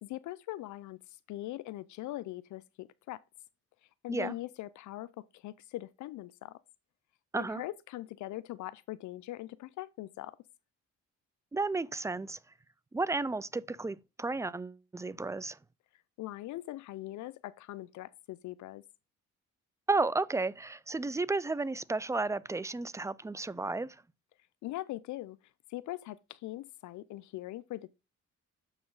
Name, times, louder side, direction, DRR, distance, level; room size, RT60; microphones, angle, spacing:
voice 1, 0.0-3.2 4.0-6.6 7.3-10.4 16.2-18.8 24.6-25.4 25.7-27.9, left 16 dB, 75° left, 0.5 m, -41 dB
voice 2, 11.5-12.4 12.9-15.6 19.9-24.0, right 3 dB, 10° right, 0.3 m, -33 dB
7.1 x 5.0 x 3.9 m
cardioid pair, 90°, 30 cm